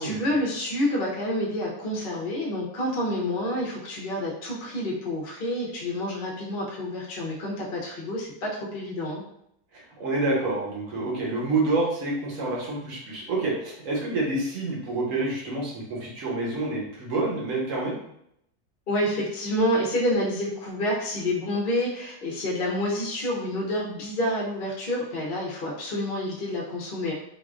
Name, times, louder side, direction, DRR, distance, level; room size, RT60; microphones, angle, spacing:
voice 1, 0.0-9.2 18.9-27.1, left 1 dB, 45° left, -3 dB, 0.8 m, -28 dB
voice 2, 9.7-17.9, right 2 dB, 55° right, -3 dB, 1.2 m, -28 dB
4.1 x 2.6 x 2.4 m, 0.74 s
omnidirectional pair, 1.8 m